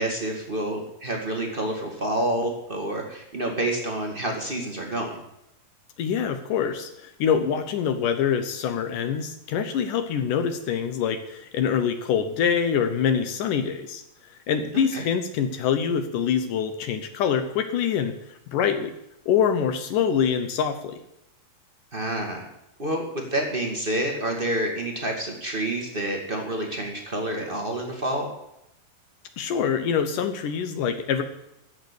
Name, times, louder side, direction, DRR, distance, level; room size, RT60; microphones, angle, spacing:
voice 1, 0.0-5.2 14.9-15.0 21.9-22.4 22.8-28.3, right 1 dB, 45° right, 1 dB, 0.6 m, -28 dB
voice 2, 6.0-14.0 14.5-18.9 19.3-21.0 29.4-31.2, left 7 dB, 70° left, 8 dB, 2.3 m, -25 dB
15.0 x 6.6 x 8.3 m, 0.86 s
omnidirectional pair, 4.2 m